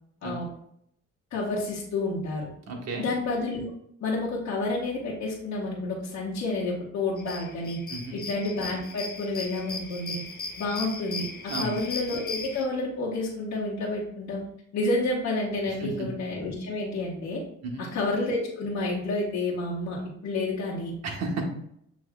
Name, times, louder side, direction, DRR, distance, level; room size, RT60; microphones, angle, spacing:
voice 1, 1.3-2.5 3.0-3.6 4.0-7.8 8.1-10.2 10.6-14.4 14.7-17.4 17.8-20.0 20.2-20.9, left 2 dB, 70° left, -8 dB, 1.3 m, -29 dB
voice 2, 2.7-3.1 7.9-8.2 11.5-11.8 15.8-16.1 17.6-17.8 21.0-21.4, right 3 dB, 60° right, -1 dB, 1.3 m, -33 dB
sound 1, 7.2-12.6, left 3 dB, 30° left, 0.9 m, -37 dB
7.3 x 3.1 x 2.3 m, 0.71 s
cardioid pair, 90°, 30 cm